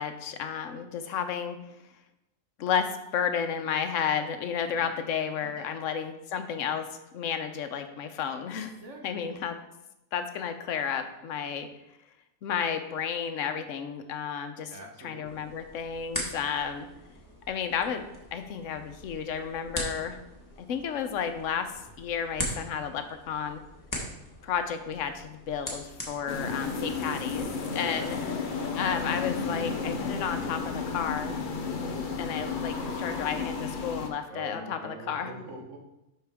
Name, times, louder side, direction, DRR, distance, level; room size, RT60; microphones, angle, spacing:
voice 1, 0.0-1.6 2.6-6.9 7.1-8.8 9.0-9.6 10.1-11.7 12.4-14.7 15.0-16.9 17.5-18.1 18.3-20.2 20.6-21.7 22.0-23.6 24.4-28.3 28.7-31.4 32.2-35.3, left 7 dB, 70° left, 8 dB, 1.1 m, -32 dB
voice 2, 14.7-15.5 26.4-27.0 28.0-28.1 32.7-33.6 34.3-35.8, right 1 dB, 65° right, 1 dB, 1.4 m, -44 dB
sound 1, 15.2-27.4, left 1 dB, 15° left, 1.4 m, -41 dB
Desert Simple, 26.3-34.1, left 4 dB, 45° left, 0.8 m, -32 dB
11.5 x 4.5 x 3.5 m, 0.92 s
omnidirectional pair, 1.4 m